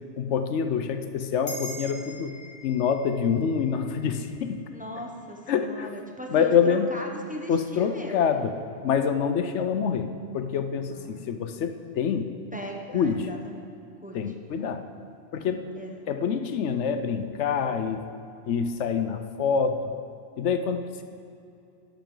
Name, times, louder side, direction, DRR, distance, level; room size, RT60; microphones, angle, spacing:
voice 1, 0.2-2.3 2.6-4.6 5.5-5.9 6.3-6.9 7.5-8.5 8.8-12.3 12.9-13.3 14.1-14.9 15.3-15.7 16.1-18.0 18.4-19.8 20.4-21.0, left 7 dB, 85° left, 8 dB, 1.0 m, -26 dB
sound 1, 1.5-6.2, equal, 55° left, 1.5 m, -44 dB
voice 2, 4.7-8.3 10.9-11.3 12.5-13.7 14.0-14.3 15.7-16.0, equal, 10° right, 1 dB, 0.9 m, -39 dB
12.0 x 12.0 x 3.9 m, 2.6 s
omnidirectional pair, 1.2 m